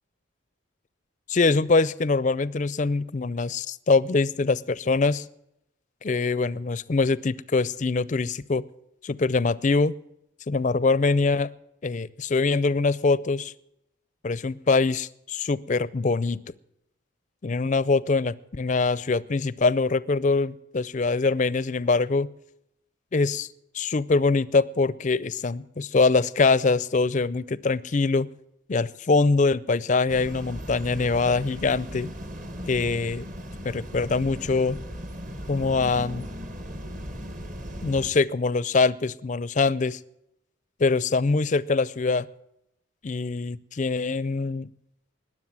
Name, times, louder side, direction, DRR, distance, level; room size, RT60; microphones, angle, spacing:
voice 1, 1.3-5.2 6.0-8.6 9.0-9.9 10.5-11.5 11.8-13.5 14.2-16.4 17.4-22.3 23.1-23.5 23.7-28.3 28.7-32.1 32.7-33.2 33.6-34.8 35.5-36.2 37.8-40.0 40.8-42.3 43.0-44.7, left 3 dB, 35° left, 20 dB, 0.4 m, -23 dB
sound 1, 30.1-38.1, equal, 40° right, 1.2 m, -37 dB
20.5 x 7.7 x 7.5 m, 0.82 s
head